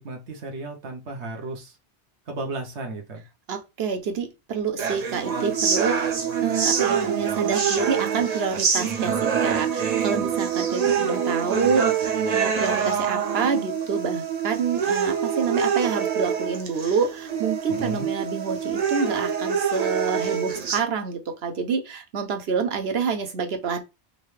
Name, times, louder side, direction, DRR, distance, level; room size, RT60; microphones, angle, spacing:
voice 1, 0.0-1.8 2.3-3.2 17.7-18.1, right 2 dB, 85° right, 1.3 m, -34 dB
voice 2, 3.5-6.0 6.4-11.9 12.3-23.8, right 5 dB, 65° right, 1.0 m, -27 dB
sound 1, 4.8-20.8, right 7 dB, 45° right, 0.6 m, -25 dB
4.0 x 3.2 x 3.2 m
omnidirectional pair, 1.1 m